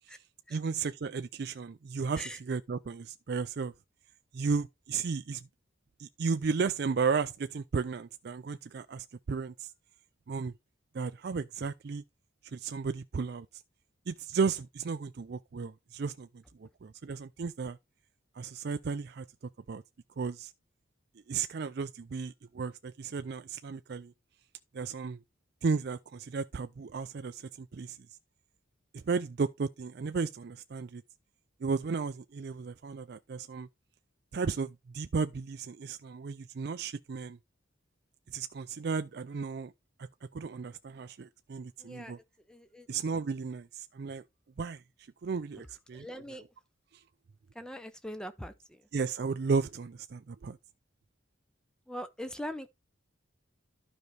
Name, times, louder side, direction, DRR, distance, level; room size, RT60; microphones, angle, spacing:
voice 1, 0.5-3.7 4.3-5.5 6.0-9.7 10.3-10.5 10.9-12.0 12.5-13.5 14.1-16.3 16.6-17.8 18.4-19.3 19.7-19.8 20.2-20.5 21.3-24.1 24.7-25.2 25.6-28.0 28.9-31.0 31.6-33.7 34.3-37.4 38.3-39.7 40.0-40.1 40.3-42.2 42.9-44.2 44.6-44.8 45.2-46.0 46.9-47.0 48.9-50.6, right 5 dB, 55° right, 0.4 m, -34 dB
voice 2, 41.8-42.9 45.9-46.4 47.5-48.9 51.9-52.7, equal, 5° left, 0.8 m, -42 dB
12.0 x 5.3 x 3.3 m
head